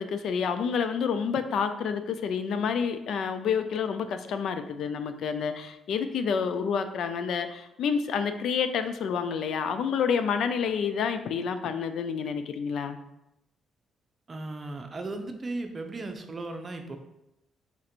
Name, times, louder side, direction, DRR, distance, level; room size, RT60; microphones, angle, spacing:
voice 1, 0.0-13.0, left 6 dB, 70° left, 9 dB, 0.3 m, -29 dB
voice 2, 14.3-17.0, right 2 dB, 35° right, 5 dB, 0.6 m, -36 dB
4.3 x 2.5 x 4.3 m, 0.88 s
cardioid pair, 90°, 0 cm